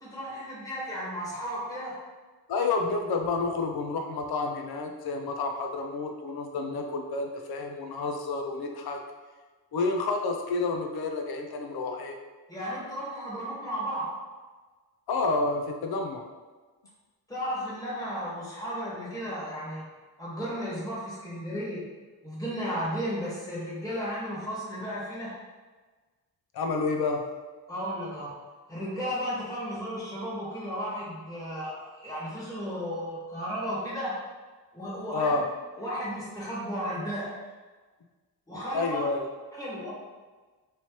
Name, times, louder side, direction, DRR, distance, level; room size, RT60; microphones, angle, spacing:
voice 1, 0.0-2.0 12.5-14.2 17.3-19.9 20.2-21.8 22.2-25.3 27.7-28.3 28.7-34.2 34.7-35.4 35.8-37.3 38.5-39.0 39.5-39.9, equal, 10° left, -8 dB, 1.3 m, -34 dB
voice 2, 2.5-9.0 9.7-12.2 15.1-16.3 26.5-27.2 35.1-35.4 38.7-39.3, left 3 dB, 80° left, 3 dB, 0.6 m, -29 dB
3.2 x 2.8 x 3.0 m, 1.3 s
cardioid pair, 85°, 37 cm